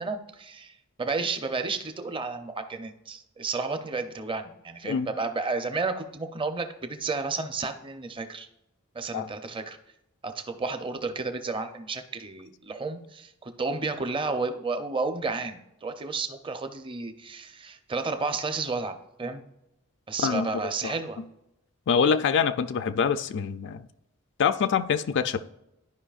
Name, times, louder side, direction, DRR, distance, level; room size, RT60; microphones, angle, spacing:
voice 1, 0.0-8.5 8.9-9.8 10.2-19.4 20.1-21.2, right 3 dB, 25° right, 0.6 m, -32 dB
voice 2, 21.9-23.8 24.4-25.5, left 6 dB, 55° left, 0.4 m, -25 dB
12.5 x 5.2 x 2.4 m
head